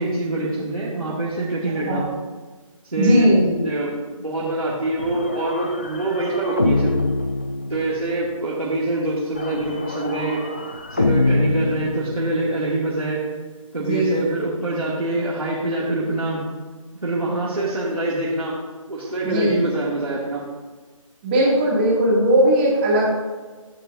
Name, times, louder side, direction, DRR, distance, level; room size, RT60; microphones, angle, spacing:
voice 1, 0.0-2.0 2.8-3.3 3.6-3.9 4.2-7.0 7.7-10.4 10.9-13.3 13.7-16.4 17.0-18.6 18.9-20.4, right 2 dB, 85° right, -7 dB, 2.3 m, -25 dB
voice 2, 3.0-3.4 13.8-14.2 19.2-19.6 21.2-23.0, right 1 dB, 20° right, -5 dB, 2.2 m, -18 dB
sound 1, 5.0-8.2 9.3-12.6, left 2 dB, 20° left, 0.3 m, -25 dB
14.5 x 6.7 x 2.6 m, 1.4 s
figure-of-eight pair, 155°, 18 cm